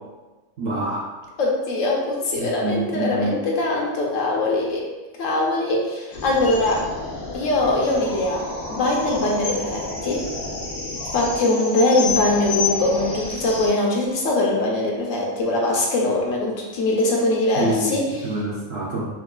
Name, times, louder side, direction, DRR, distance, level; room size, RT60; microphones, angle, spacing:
voice 1, 0.6-1.1 2.4-3.3 17.6-17.9 18.2-19.1, right 1 dB, 60° right, -5 dB, 0.7 m, -26 dB
voice 2, 1.4-4.9 5.2-6.9 7.3-10.2 11.1-18.4, left 2 dB, 70° left, -2 dB, 0.9 m, -22 dB
sound 1, 6.1-13.7, left 3 dB, 90° left, 1.2 m, -30 dB
4.6 x 2.2 x 2.3 m, 1.2 s
omnidirectional pair, 1.4 m